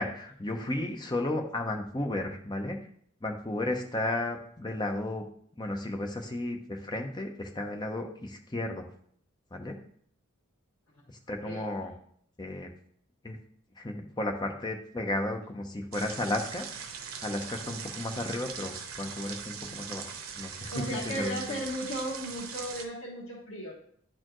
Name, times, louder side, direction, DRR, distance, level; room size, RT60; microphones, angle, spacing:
voice 1, 0.0-2.8 3.2-5.2 5.6-8.8 9.5-9.8 11.3-11.9 12.4-12.7 13.2-13.4 13.8-16.7 17.2-21.4, left 1 dB, 20° left, 3 dB, 0.7 m, -33 dB
sound 1, 15.9-22.9, right 6 dB, 85° right, 0.8 m, -41 dB
voice 2, 20.7-23.7, equal, 80° left, -5 dB, 1.5 m, -35 dB
10.0 x 4.4 x 3.0 m, 0.64 s
head